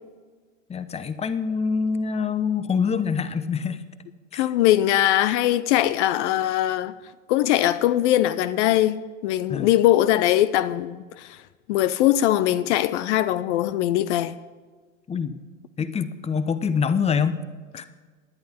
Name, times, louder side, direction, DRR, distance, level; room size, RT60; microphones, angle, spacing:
voice 1, 0.7-3.8 4.3-4.4 9.5-9.7 15.1-15.4 15.8-17.4 17.7-17.9, left 6 dB, 15° left, 0.8 m, -25 dB
voice 2, 4.3-6.9 7.3-11.4 11.7-14.4, left 13 dB, 60° left, 0.6 m, -21 dB
18.5 x 10.5 x 4.4 m
hypercardioid pair, 85°, 39 cm